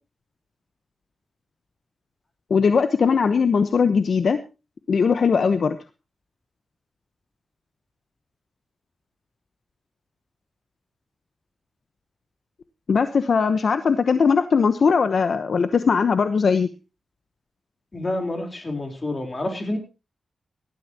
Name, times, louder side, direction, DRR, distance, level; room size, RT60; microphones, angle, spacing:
voice 1, 2.5-4.4 4.9-5.8 12.9-16.7, left 5 dB, 60° left, 10 dB, 1.0 m, -19 dB
voice 2, 17.9-19.8, left 1 dB, 30° left, 4 dB, 4.0 m, -28 dB
19.5 x 13.5 x 3.0 m, 0.29 s
wide cardioid pair, 115°, 0 cm